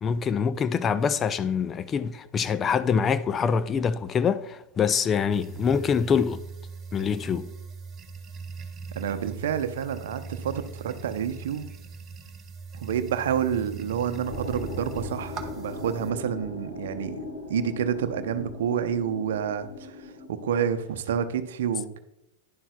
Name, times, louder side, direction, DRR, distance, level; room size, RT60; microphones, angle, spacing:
voice 1, 0.0-6.4 6.9-7.5, left 6 dB, 25° left, 0.4 m, -25 dB
sound 1, 5.3-16.1, right 4 dB, 25° right, 1.1 m, -41 dB
voice 2, 9.0-11.7 12.7-17.2 17.5-22.0, right 8 dB, 65° right, 0.7 m, -29 dB
sound 2, 14.3-20.6, left 2 dB, 80° left, 3.1 m, -39 dB
11.0 x 10.5 x 2.3 m
figure-of-eight pair, 95°, 0 cm